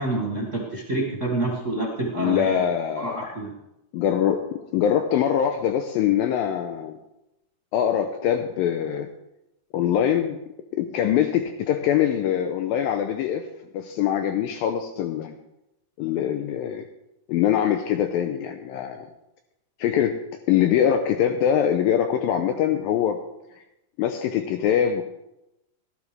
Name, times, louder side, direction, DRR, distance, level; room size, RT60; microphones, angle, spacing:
voice 1, 0.0-2.5 3.0-3.5, right 2 dB, 65° right, -3 dB, 0.7 m, -27 dB
voice 2, 2.1-3.3 3.9-7.0 7.7-9.1 9.7-10.4 10.7-13.5 13.7-15.4 16.0-16.9 17.3-19.1 19.8-20.2 20.5-23.2 24.0-25.0, left 9 dB, 80° left, 6 dB, 2.2 m, -23 dB
18.0 x 12.0 x 3.3 m, 0.90 s
omnidirectional pair, 4.6 m